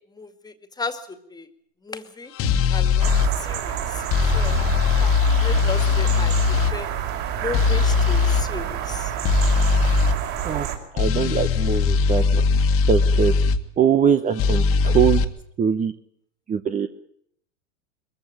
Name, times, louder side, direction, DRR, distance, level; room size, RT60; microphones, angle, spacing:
voice 1, 0.1-1.5 1.8-2.3 2.7-3.1 3.4-4.0 4.3-4.6 4.9-5.1 5.4-6.3 6.7-6.9 7.4-9.1, left 4 dB, 10° left, 9 dB, 2.2 m, -34 dB
sound 1, 2.4-3.3 4.1-6.7 7.5-8.4 9.2-10.2 11.0-13.6 14.4-15.2, left 5 dB, 35° left, 1.8 m, -20 dB
sound 2, 3.0-10.8, right 9 dB, 45° right, 5.5 m, -28 dB
voice 2, 10.9-12.4 12.9-13.3 13.8-15.2 15.6-15.9 16.5-16.9, right 7 dB, 20° right, 10 dB, 0.9 m, -22 dB
22.5 x 15.0 x 8.8 m, 0.69 s
hypercardioid pair, 115°, 39 cm